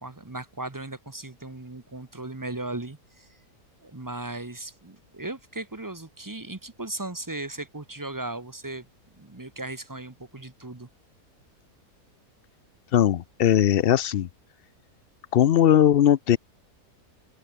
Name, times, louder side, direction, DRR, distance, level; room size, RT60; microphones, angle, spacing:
voice 1, 0.0-3.3 3.8-8.9 9.2-10.9, right 2 dB, 15° right, 0.9 m, -37 dB
voice 2, 12.9-14.3 15.3-16.4, left 10 dB, 75° left, 0.5 m, -19 dB
open air
omnidirectional pair, 1.7 m